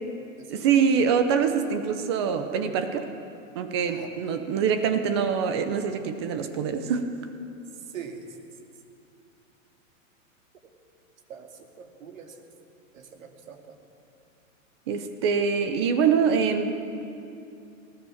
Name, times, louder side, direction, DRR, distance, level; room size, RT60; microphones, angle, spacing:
voice 1, 0.5-3.1 3.5-7.1 14.9-16.7, right 6 dB, 20° right, 8 dB, 0.7 m, -24 dB
voice 2, 11.8-12.3 12.9-13.8, right 7 dB, 70° right, 4 dB, 2.7 m, -42 dB
19.5 x 18.5 x 7.2 m, 2.6 s
supercardioid pair, 180°, 41 cm